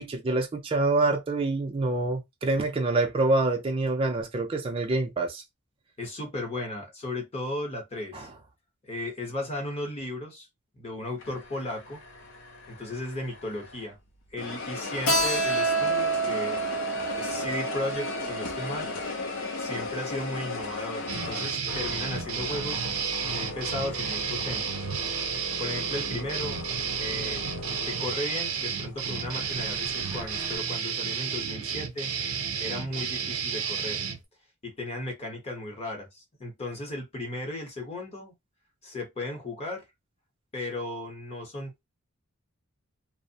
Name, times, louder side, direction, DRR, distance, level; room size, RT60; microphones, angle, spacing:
voice 1, 0.0-5.4 8.1-8.3 17.0-17.4, right 2 dB, 25° right, 0.4 m, -26 dB
voice 2, 6.0-8.3 8.8-10.5 10.7-12.0 12.7-14.0 14.3-16.6 17.2-18.9 19.6-22.8 23.2-24.9 25.6-26.6 27.0-27.4 27.9-32.1 32.6-34.0 34.6-38.3 38.8-39.9 40.5-41.8, left 1 dB, 30° left, 0.8 m, -35 dB
sound 1, 11.2-14.0 14.4-30.6, left 3 dB, 55° left, 0.5 m, -37 dB
Keyboard (musical), 15.1-20.3, right 3 dB, 75° left, 0.9 m, -29 dB
sound 2, 21.1-34.2, right 7 dB, 70° right, 0.5 m, -32 dB
2.5 x 2.0 x 2.6 m
head